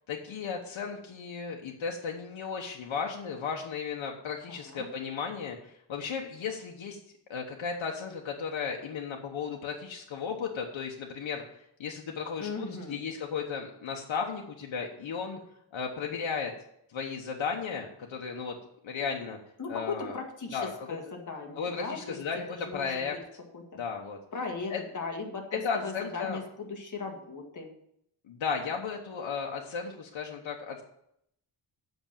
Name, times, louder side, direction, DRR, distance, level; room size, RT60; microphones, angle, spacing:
voice 1, 0.1-7.0 7.3-11.4 11.8-15.4 15.7-16.5 16.9-18.5 18.8-19.4 19.7-20.2 20.5-20.7 21.6-23.1 23.7-24.2 24.7-24.8 25.6-26.4 28.3-30.8, left 6 dB, 80° left, 1 dB, 1.1 m, -35 dB
voice 2, 4.5-4.9 12.4-13.0 19.6-22.2 22.5-23.2 23.5-23.8 24.3-27.7, left 4 dB, 40° left, 1 dB, 1.8 m, -38 dB
8.0 x 6.1 x 7.3 m, 0.75 s
wide cardioid pair, 160°, 46 cm